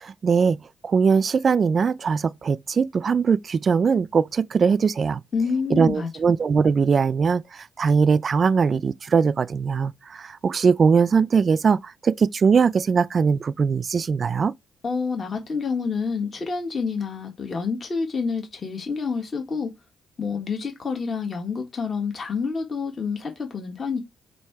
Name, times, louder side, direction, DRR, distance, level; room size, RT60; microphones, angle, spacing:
voice 1, 0.0-5.2 5.7-14.5, right 5 dB, 45° right, 0.3 m, -21 dB
voice 2, 5.3-6.1 14.8-19.7 20.2-24.0, left 5 dB, 40° left, 1.5 m, -28 dB
7.3 x 2.8 x 4.6 m
cardioid pair, 90°, 0 cm